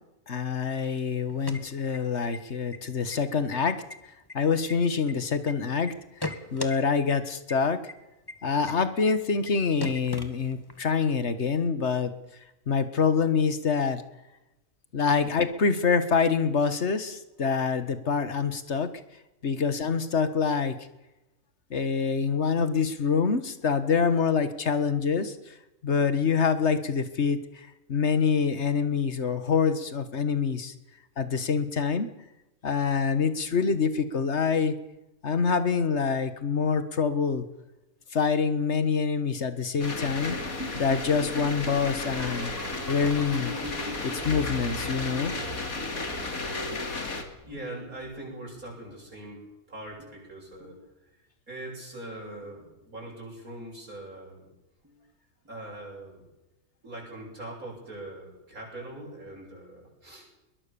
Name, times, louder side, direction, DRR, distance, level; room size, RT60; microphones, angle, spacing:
voice 1, 0.3-3.8 4.3-7.8 8.4-12.1 12.7-14.0 14.9-18.9 19.4-20.8 21.7-25.5 25.8-30.7 31.2-32.1 32.6-34.8 35.2-37.4 38.1-40.4 40.7-42.5 42.9-43.6 44.0-45.3, left 5 dB, 50° left, 11 dB, 1.8 m, -26 dB
sound 1, 1.2-2.4 2.7-2.8 3.1-3.6 3.9-5.5 5.9-6.8 7.1-7.2 7.5-7.6 7.9-8.0 8.3-8.4 8.7-8.8 9.1-9.2 9.5-9.6 9.8-10.8, left 2 dB, 15° left, 1.6 m, -37 dB
sound 2, 39.8-47.2, left 2 dB, 80° left, 3.0 m, -34 dB
sound 3, 40.3-47.1 47.3-48.9 49.9-50.3 50.5-50.9 52.4-52.7 53.0-53.3 54.8-54.9, left 1 dB, 10° right, 2.8 m, -42 dB
voice 2, 47.4-50.8 51.5-54.5 55.5-56.3 56.8-60.3, right 1 dB, 80° right, -2 dB, 8.7 m, -42 dB
22.0 x 20.5 x 7.0 m, 0.98 s
omnidirectional pair, 1.5 m